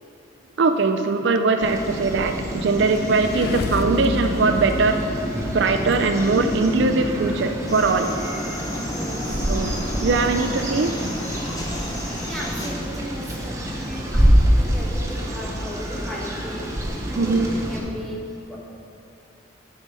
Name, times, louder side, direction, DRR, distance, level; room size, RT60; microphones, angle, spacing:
voice 1, 0.6-5.0 5.5-8.1 9.5-11.0 17.2-17.5, right 4 dB, 65° right, 6 dB, 0.4 m, -21 dB
sound 1, 1.6-17.8, equal, 15° right, 0.8 m, -26 dB
sound 2, 2.6-6.1, left 3 dB, 50° left, 0.3 m, -32 dB
sound 3, 7.7-12.7, left 1 dB, 20° left, 0.8 m, -33 dB
voice 2, 8.9-9.4 12.1-16.7 17.1-18.6, equal, ahead, -4 dB, 1.1 m, -36 dB
11.0 x 4.9 x 5.5 m, 2.6 s
head